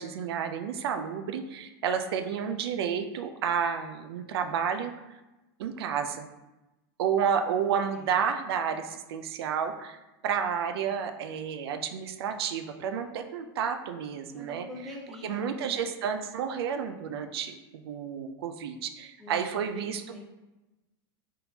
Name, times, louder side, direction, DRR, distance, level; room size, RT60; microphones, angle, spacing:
voice 1, 0.0-4.9 5.6-6.3 7.0-14.7 15.2-20.0, right 7 dB, 80° right, 7 dB, 0.4 m, -31 dB
voice 2, 7.3-8.2 14.3-15.8 19.2-20.2, left 1 dB, ahead, -3 dB, 0.7 m, -45 dB
4.2 x 3.6 x 2.8 m, 1.0 s
supercardioid pair, 170°, 13 cm